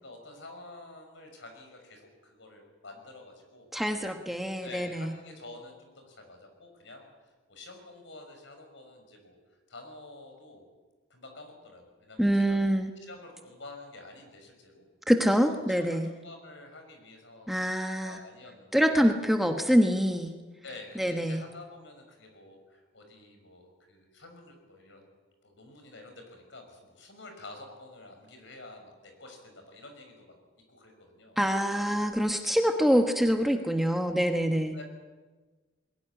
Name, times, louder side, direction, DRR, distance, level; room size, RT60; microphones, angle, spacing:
voice 1, 0.0-3.7 4.3-7.1 7.5-9.4 9.7-10.7 11.1-12.6 13.0-14.9 15.4-18.9 20.6-25.1 25.4-30.3 30.7-31.4 31.7-31.8 34.7-34.8, left 2 dB, 65° left, 4 dB, 6.1 m, -49 dB
voice 2, 3.7-5.1 12.2-12.9 15.1-16.1 17.5-18.2 18.7-20.3 21.0-21.4 31.4-34.7, equal, ahead, 4 dB, 1.1 m, -25 dB
21.5 x 17.0 x 9.9 m, 1.3 s
head